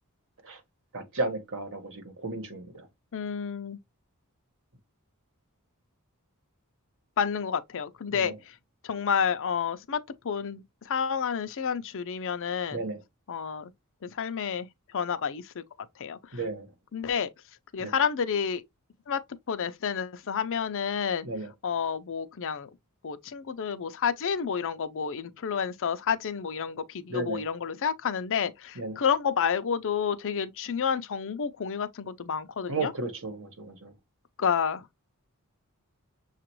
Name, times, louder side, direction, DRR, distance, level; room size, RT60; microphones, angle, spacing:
voice 1, 0.9-2.9 8.1-8.4 12.7-13.0 16.3-16.7 17.8-17.9 21.2-21.5 27.1-27.4 28.8-29.0 32.7-33.9, right 3 dB, 65° right, 1.3 m, -34 dB
voice 2, 3.1-3.8 7.2-8.6 8.8-12.8 13.3-13.7 14.0-14.7 14.9-15.6 16.0-16.4 16.9-17.3 17.7-18.6 19.1-21.3 21.6-22.7 23.0-32.9 34.4-34.8, left 7 dB, 60° left, 0.5 m, -30 dB
6.7 x 2.5 x 3.0 m
head